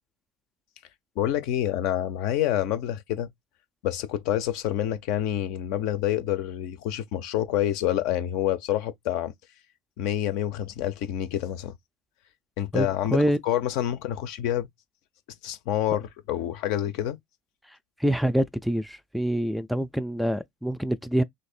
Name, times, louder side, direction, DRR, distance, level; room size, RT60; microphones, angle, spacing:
voice 1, 1.2-3.3 3.8-9.3 10.0-11.7 12.6-14.7 15.4-17.2, left 12 dB, 60° left, 0.5 m, -27 dB
voice 2, 12.7-13.4 18.0-21.2, equal, ahead, 0.4 m, -26 dB
3.2 x 2.6 x 4.2 m
figure-of-eight pair, 75°, 0 cm